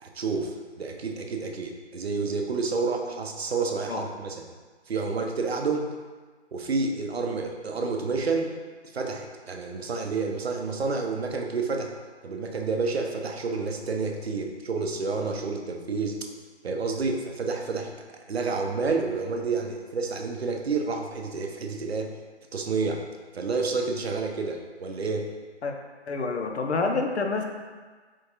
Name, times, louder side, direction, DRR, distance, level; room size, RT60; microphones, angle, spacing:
voice 1, 0.0-4.5 4.9-5.9 6.5-8.5 8.9-11.9 12.2-16.2 16.6-22.2 22.5-23.0 23.3-25.3, right 4 dB, 65° right, 3 dB, 0.6 m, -29 dB
voice 2, 26.1-27.4, left 3 dB, 75° left, 3 dB, 0.6 m, -27 dB
4.4 x 2.4 x 3.0 m, 1.4 s
figure-of-eight pair, 155°, 34 cm